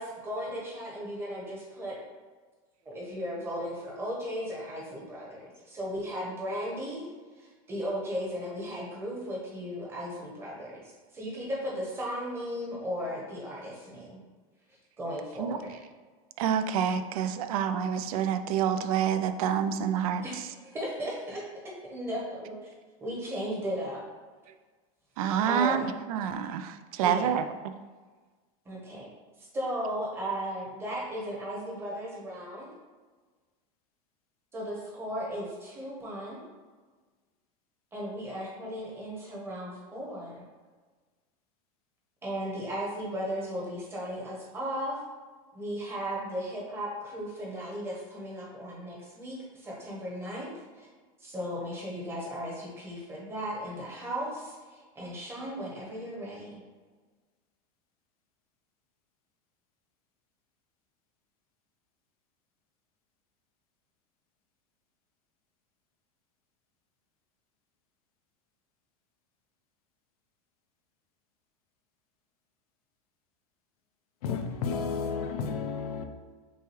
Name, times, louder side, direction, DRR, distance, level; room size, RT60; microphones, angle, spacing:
voice 1, 0.0-2.0 2.8-7.1 7.4-14.2 15.0-15.8 20.2-20.3 20.6-22.6 23.0-24.0 25.5-25.9 27.0-27.4 28.6-29.1 29.4-32.7 34.5-36.4 37.9-40.4 42.2-45.0 45.5-50.9 51.2-56.6, equal, 15° right, 1.0 m, -36 dB
voice 2, 16.4-20.4 25.2-27.4, right 8 dB, 80° right, 0.4 m, -28 dB
voice 3, 74.2-76.1, left 5 dB, 90° left, 0.6 m, -32 dB
6.0 x 2.3 x 3.0 m
supercardioid pair, 160°, 18 cm